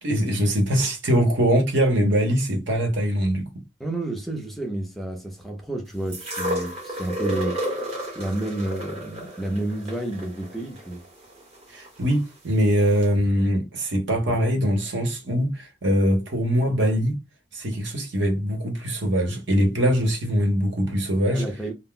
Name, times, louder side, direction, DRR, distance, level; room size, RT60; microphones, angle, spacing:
voice 1, 0.0-3.5 11.7-17.2 17.5-21.4, equal, 65° right, 0.9 m, -22 dB
voice 2, 3.8-7.6 8.1-11.0 21.3-21.7, right 1 dB, ahead, 0.5 m, -30 dB
sound 1, 6.1-12.2 13.0-13.1, equal, 35° right, 0.8 m, -32 dB
2.3 x 2.1 x 3.6 m
head